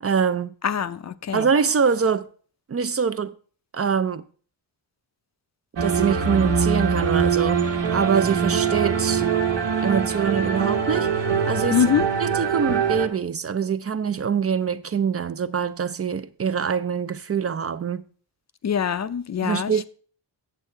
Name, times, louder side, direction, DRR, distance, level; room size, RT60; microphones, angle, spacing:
voice 1, 0.0-0.5 1.3-2.3 2.7-3.3 3.7-4.3 5.8-9.3 9.8-11.9 12.2-18.1 19.4-19.8, right 6 dB, 35° right, 0.5 m, -24 dB
voice 2, 0.6-1.5 11.7-12.0 18.6-19.7, left 7 dB, 40° left, 0.5 m, -23 dB
sound 1, 5.8-13.1, right 6 dB, 75° right, 1.4 m, -23 dB
8.2 x 7.5 x 4.4 m
wide cardioid pair, 100°, 44 cm